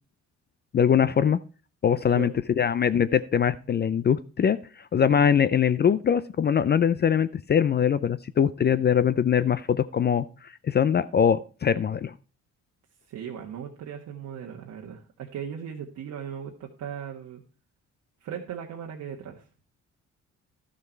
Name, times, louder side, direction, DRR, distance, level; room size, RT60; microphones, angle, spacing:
voice 1, 0.7-1.4 1.8-4.6 4.9-12.1, left 8 dB, 35° left, 15 dB, 0.4 m, -22 dB
voice 2, 1.9-2.3 13.1-17.4 18.2-19.4, right 8 dB, 75° right, -1 dB, 1.4 m, -38 dB
12.0 x 6.5 x 4.5 m, 0.37 s
cardioid pair, 90°, 30 cm